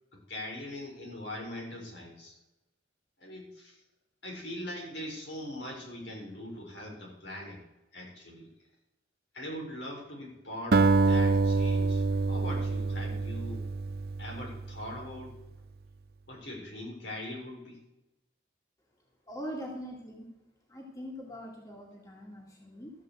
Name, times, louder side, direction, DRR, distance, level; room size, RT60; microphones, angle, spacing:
voice 1, 0.3-2.4 3.2-3.8 4.2-7.6 7.9-8.5 9.3-13.7 14.2-15.4 16.3-17.8, left 1 dB, 80° left, -1 dB, 3.9 m, -41 dB
Acoustic guitar, 10.7-15.2, right 3 dB, 55° right, 0.5 m, -26 dB
voice 2, 19.3-20.3 20.7-22.9, equal, 20° left, -2 dB, 2.2 m, -42 dB
14.0 x 5.2 x 7.8 m, 0.94 s
head